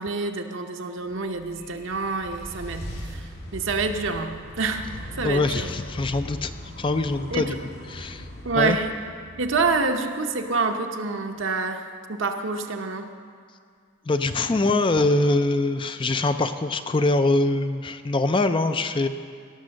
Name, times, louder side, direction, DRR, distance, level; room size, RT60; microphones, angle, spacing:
voice 1, 0.0-4.9 5.2-5.7 7.3-7.6 8.4-8.9 9.4-13.1, right 4 dB, 60° right, 5 dB, 0.8 m, -27 dB
sound 1, 1.2-10.4, equal, 70° left, 2.9 m, -39 dB
voice 2, 5.2-6.5 6.8-7.6 7.9-8.3 8.6-8.8 14.1-19.1, left 2 dB, 25° left, 9 dB, 0.4 m, -23 dB
17.0 x 6.8 x 6.4 m, 2.2 s
head